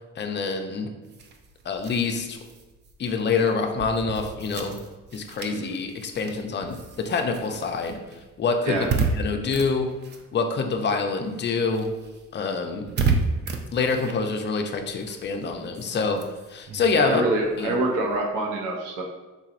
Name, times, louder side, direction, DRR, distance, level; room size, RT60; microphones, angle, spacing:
voice 1, 0.2-0.9 1.7-2.4 3.0-4.8 5.1-8.0 8.4-8.8 9.1-9.9 10.3-11.9 12.3-12.9 13.7-16.2 16.5-17.2 17.6-17.8, left 4 dB, 35° left, 4 dB, 0.5 m, -26 dB
sound 1, 1.0-10.9 11.2-18.2, right 4 dB, 35° right, 0.4 m, -33 dB
voice 2, 16.9-19.0, right 2 dB, 85° right, 0 dB, 0.7 m, -26 dB
3.9 x 2.9 x 2.5 m, 1.2 s
cardioid pair, 90°, 30 cm